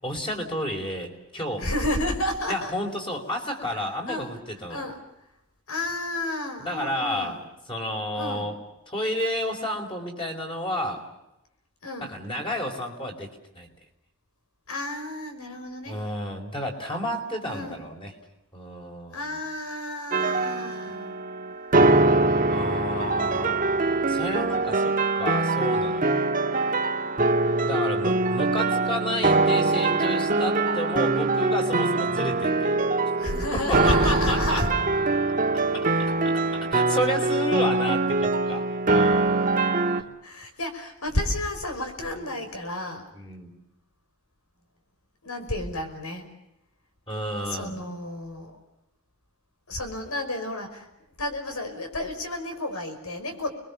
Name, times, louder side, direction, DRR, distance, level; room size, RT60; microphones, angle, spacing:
voice 1, 0.0-1.7 2.5-4.8 6.6-7.4 7.7-8.5 8.9-11.1 12.0-13.7 15.9-18.1 18.5-19.4 22.5-23.6 24.1-26.3 27.7-32.8 33.7-34.6 35.7-35.9 36.2-36.4 36.7-39.6 39.9-40.0 42.1-42.2 43.1-43.5 47.1-47.8, equal, 25° left, 2 dB, 4.6 m, -31 dB
voice 2, 1.6-2.7 4.1-4.3 4.7-5.0 5.7-7.4 8.1-8.5 11.8-12.1 14.7-16.0 17.5-17.8 19.1-21.2 33.1-34.7 35.6-35.7 40.2-43.1 45.2-46.3 47.4-48.6 49.7-50.9 51.2-53.5, left 1 dB, 80° left, 6 dB, 5.4 m, -31 dB
sound 1, 20.1-40.0, right 2 dB, 35° right, 1.6 m, -23 dB
30.0 x 22.0 x 7.1 m, 0.88 s
head